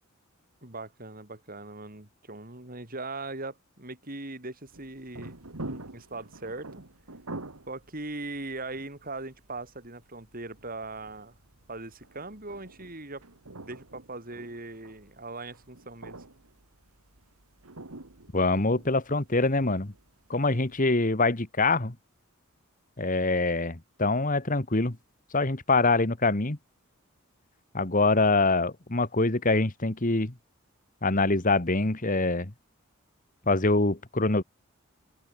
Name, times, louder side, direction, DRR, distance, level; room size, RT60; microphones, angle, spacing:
voice 1, 0.6-5.4 5.6-6.8 7.7-11.3 11.7-13.2 13.6-16.2, right 2 dB, 40° right, 4.8 m, -40 dB
sound 1, 4.7-20.9, right 2 dB, 85° right, 2.4 m, -47 dB
voice 2, 18.3-19.9 20.3-21.9 23.0-25.0 25.3-26.6 27.7-30.3 31.0-32.5 33.5-34.4, left 3 dB, 40° left, 1.8 m, -24 dB
open air
head